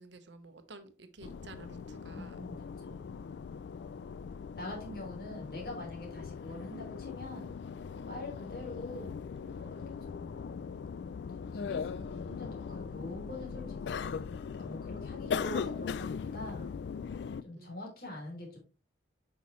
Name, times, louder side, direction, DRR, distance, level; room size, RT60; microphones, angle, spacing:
voice 1, 0.0-2.4 17.6-17.8, right 3 dB, 80° right, 1.0 m, -52 dB
sound 1, 1.2-17.4, left 6 dB, 70° left, 0.3 m, -40 dB
voice 2, 2.1-2.6 2.9-3.0 4.6-7.5 8.1-9.1 9.5-10.3 11.5-14.2 14.5-16.7 17.4-18.6, left 1 dB, 50° left, 3.1 m, -44 dB
8.4 x 5.6 x 3.1 m
head